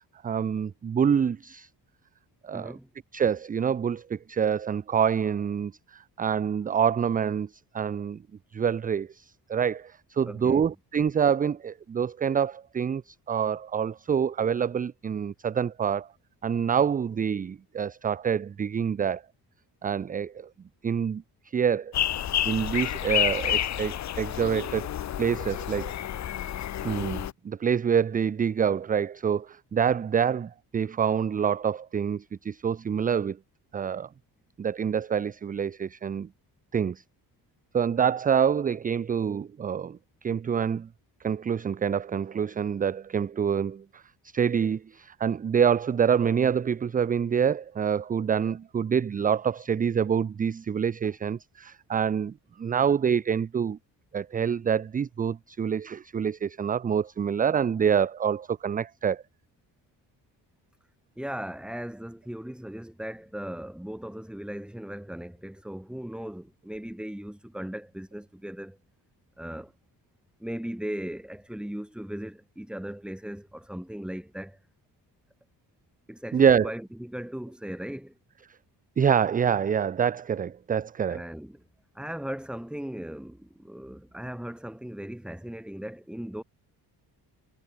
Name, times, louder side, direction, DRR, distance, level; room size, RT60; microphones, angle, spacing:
voice 1, 0.0-1.7 2.4-2.7 3.1-8.2 8.5-16.1 16.4-19.2 19.8-20.5 20.8-21.2 21.5-21.9 22.4-24.9 25.2-25.9 26.8-33.4 33.7-34.1 34.6-36.3 36.7-37.0 37.7-40.9 41.2-44.0 44.3-53.8 54.1-59.2 76.3-76.7 79.0-81.2, right 7 dB, 20° right, 0.4 m, -26 dB
voice 2, 2.5-2.9 10.2-10.6 61.2-68.8 69.4-69.7 70.4-74.6 76.1-78.1 81.1-81.6 81.9-86.4, equal, ahead, 2.9 m, -38 dB
sound 1, 21.9-27.3, left 11 dB, 40° left, 0.7 m, -29 dB
cardioid pair, 170°, 42 cm